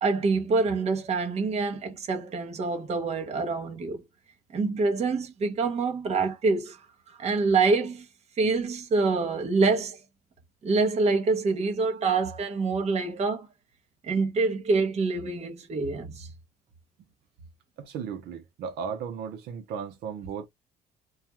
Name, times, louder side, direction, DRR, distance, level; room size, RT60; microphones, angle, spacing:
voice 1, 0.0-4.0 4.5-6.8 7.1-8.1 8.4-10.0 10.6-13.5 14.0-16.3, right 4 dB, 40° right, 0.8 m, -26 dB
voice 2, 17.8-20.5, right 7 dB, 80° right, 0.7 m, -35 dB
2.3 x 2.3 x 2.9 m
cardioid pair, 110°, 17 cm